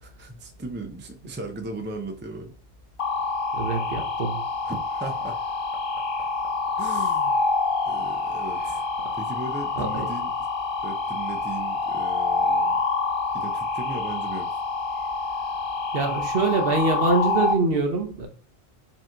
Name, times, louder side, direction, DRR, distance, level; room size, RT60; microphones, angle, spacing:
voice 1, 0.0-2.5 4.6-5.4 6.8-7.4 7.8-8.8 9.1-10.3 10.8-12.8 13.3-14.6, right 2 dB, 15° right, 0.4 m, -37 dB
sound 1, 3.0-17.5, left 3 dB, 55° left, 0.8 m, -27 dB
voice 2, 3.5-4.4 9.8-10.1 15.9-18.3, right 3 dB, 60° right, 1.0 m, -24 dB
4.7 x 2.9 x 3.7 m
omnidirectional pair, 1.2 m